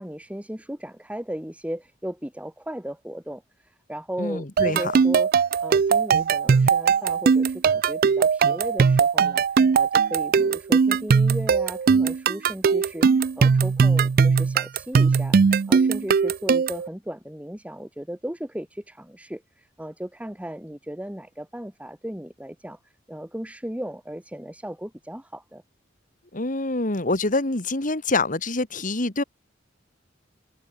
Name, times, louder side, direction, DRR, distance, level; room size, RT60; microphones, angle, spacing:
voice 1, 0.0-5.3 5.6-25.6, equal, 5° right, 1.6 m, -36 dB
voice 2, 4.2-4.8 26.3-29.2, left 2 dB, 45° left, 2.4 m, -26 dB
sound 1, 4.6-16.9, right 5 dB, 50° right, 0.4 m, -20 dB
head